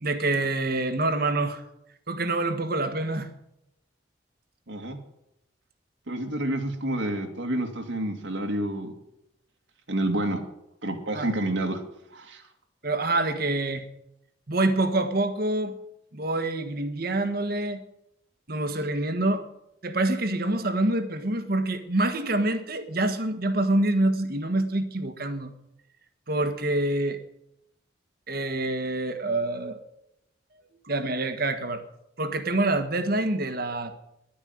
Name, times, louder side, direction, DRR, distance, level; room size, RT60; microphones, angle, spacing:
voice 1, 0.0-1.6 2.1-3.3 11.1-11.3 12.8-13.9 14.5-15.8 16.1-17.8 18.5-19.4 19.8-25.5 26.3-27.2 28.3-29.8 30.8-31.8 32.2-33.9, right 2 dB, 55° right, 9 dB, 1.5 m, -26 dB
voice 2, 4.7-5.0 6.1-8.9 9.9-10.4 10.8-11.8 12.1-12.4, right 1 dB, 80° right, 4 dB, 2.3 m, -29 dB
11.5 x 10.0 x 9.2 m, 0.81 s
head